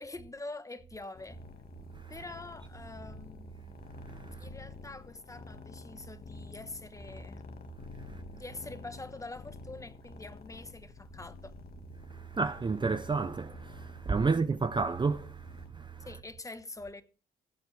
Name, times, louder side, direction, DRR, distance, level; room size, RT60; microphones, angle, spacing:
voice 1, 0.0-1.4 2.1-3.8 4.4-7.4 8.3-11.5 14.2-14.5 16.0-17.0, left 2 dB, 15° left, 1.2 m, -45 dB
sound 1, 1.1-15.7, left 4 dB, 50° left, 1.8 m, -49 dB
voice 2, 4.1-4.5 8.0-8.2 12.1-16.1, right 4 dB, 25° right, 0.6 m, -32 dB
19.0 x 7.9 x 3.4 m
cardioid pair, 90°, 20 cm